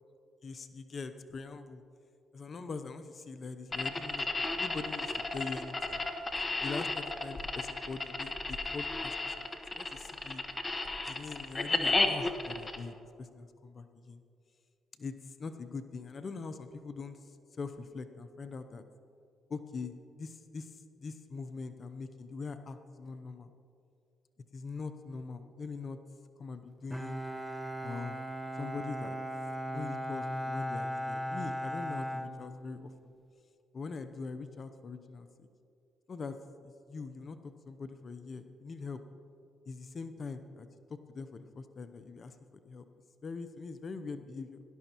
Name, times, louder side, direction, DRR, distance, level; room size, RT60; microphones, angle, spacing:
voice 1, 0.4-1.8 2.3-4.3 4.6-6.0 6.6-10.4 11.1-14.2 15.0-18.8 19.5-23.5 24.5-26.0 26.4-27.3 27.8-28.2 28.5-29.2 29.7-33.1 33.7-35.5 36.1-36.4 36.6-39.0 39.7-42.4 42.6-42.8 43.2-44.6, left 4 dB, 50° left, 10 dB, 0.6 m, -42 dB
sound 1, 3.7-12.8, left 3 dB, 30° left, 1.3 m, -33 dB
Bowed string instrument, 26.9-33.1, equal, ahead, 0.8 m, -37 dB
18.0 x 12.0 x 3.0 m, 2.5 s
supercardioid pair, 65°, 0 cm